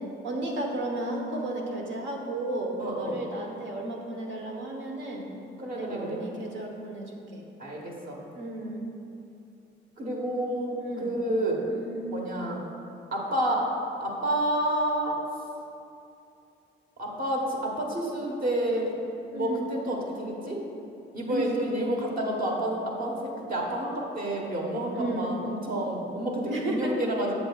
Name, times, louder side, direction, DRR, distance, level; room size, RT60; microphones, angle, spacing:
voice 1, 0.2-5.3 5.7-7.4 8.3-8.9 10.8-11.1 11.7-12.2 19.3-19.7 21.3-21.5 24.9-25.4 26.5-27.0, right 1 dB, 70° right, 1 dB, 1.1 m, -33 dB
voice 2, 2.8-3.2 5.6-6.2 7.6-8.2 10.0-11.7 12.1-12.6 13.1-13.7 14.0-15.2 17.0-18.9 19.3-20.6 21.1-27.3, right 1 dB, 45° right, -1 dB, 1.3 m, -29 dB
7.7 x 7.0 x 2.4 m, 2.7 s
cardioid pair, 90°, 20 cm